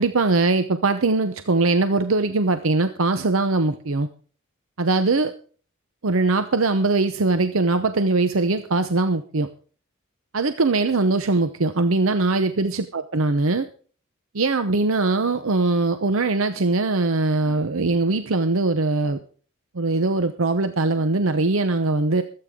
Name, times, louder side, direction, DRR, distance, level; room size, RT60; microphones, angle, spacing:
voice 1, 0.0-4.1 4.8-5.3 6.0-9.5 10.3-13.7 14.3-19.2 19.7-22.2, right 3 dB, 75° right, 9 dB, 0.8 m, -21 dB
24.5 x 8.8 x 3.7 m, 0.42 s
head